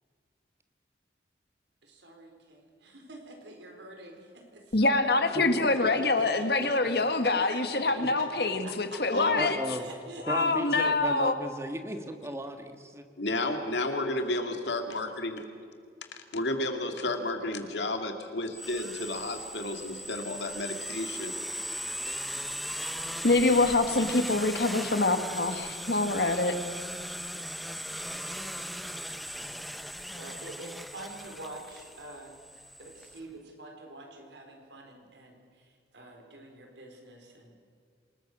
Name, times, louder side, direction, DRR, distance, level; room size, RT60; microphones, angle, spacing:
voice 1, 1.8-5.0 5.7-5.8 6.1-6.7 7.2-9.2 9.7-10.6 30.2-37.6, right 1 dB, 80° right, 2 dB, 4.6 m, -46 dB
voice 2, 4.7-9.6 10.3-11.3 23.2-26.6, left 2 dB, 60° left, 8 dB, 1.8 m, -25 dB
voice 3, 5.3-5.7 6.6-6.7 8.0-8.1 9.3-9.9 10.3-13.0, equal, 15° right, 7 dB, 1.5 m, -35 dB
voice 4, 9.1-9.5 13.2-15.5 16.3-21.4, left 2 dB, 80° left, 5 dB, 2.4 m, -32 dB
sound 1, 18.5-33.2, equal, ahead, 0.6 m, -38 dB
27.0 x 20.5 x 6.3 m, 2.3 s
head